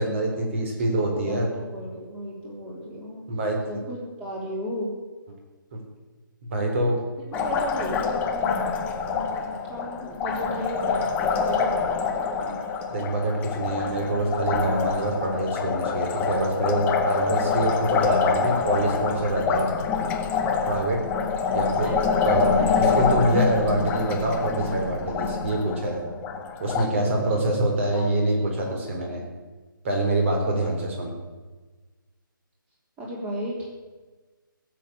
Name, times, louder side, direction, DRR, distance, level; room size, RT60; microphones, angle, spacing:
voice 1, 0.0-1.5 3.3-3.6 5.7-5.8 6.5-7.0 12.9-19.7 20.7-21.0 21.5-21.9 22.1-26.0 26.6-29.2 29.8-31.1, right 1 dB, 35° right, 1 dB, 3.9 m, -25 dB
voice 2, 1.2-3.2 3.7-4.9 7.4-12.6 21.8-22.0 22.3-23.2 26.8-27.1 27.9-28.1 28.4-29.2 33.0-33.7, equal, 10° right, -4 dB, 3.5 m, -35 dB
Liquid, 7.3-26.9, left 5 dB, 10° left, 0.8 m, -26 dB
16.5 x 7.7 x 8.5 m, 1.3 s
figure-of-eight pair, 145°, 11 cm